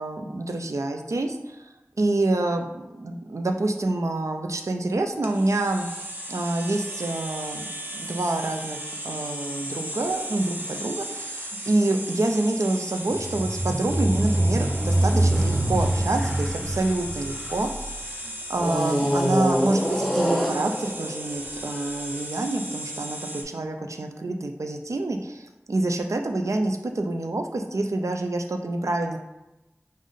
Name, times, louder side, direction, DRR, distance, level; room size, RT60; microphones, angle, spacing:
voice 1, 0.0-1.6 2.0-5.9 6.3-7.7 7.9-8.8 9.0-18.0 18.2-29.2, right 2 dB, 90° right, 4 dB, 0.4 m, -27 dB
sound 1, 5.2-23.4, right 1 dB, 35° right, 0.7 m, -36 dB
sound 2, 13.1-17.8 18.6-22.0, right 1 dB, 5° right, 0.8 m, -25 dB
4.9 x 2.1 x 3.7 m, 0.98 s
wide cardioid pair, 40°, 5 cm